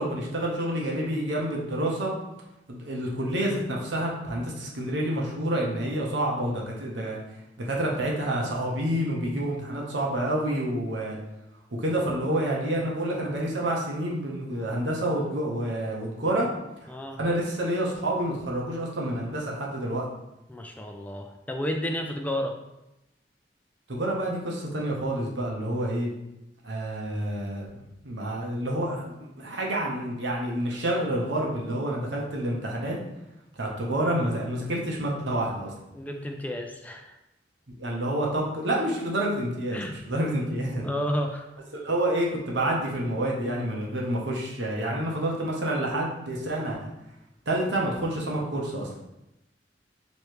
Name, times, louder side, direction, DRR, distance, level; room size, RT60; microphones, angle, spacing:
voice 1, 0.0-2.1 2.7-7.2 7.6-11.2 11.8-16.5 17.2-20.1 23.9-26.1 26.6-27.7 28.0-33.0 33.6-35.7 37.8-40.9 41.7-46.9 47.5-48.9, right 1 dB, 85° right, -2 dB, 1.0 m, -28 dB
voice 2, 16.9-17.2 20.5-22.6 35.9-37.2 39.7-40.0 40.8-41.5, equal, 10° left, 4 dB, 0.3 m, -31 dB
3.2 x 3.1 x 4.6 m, 0.91 s
head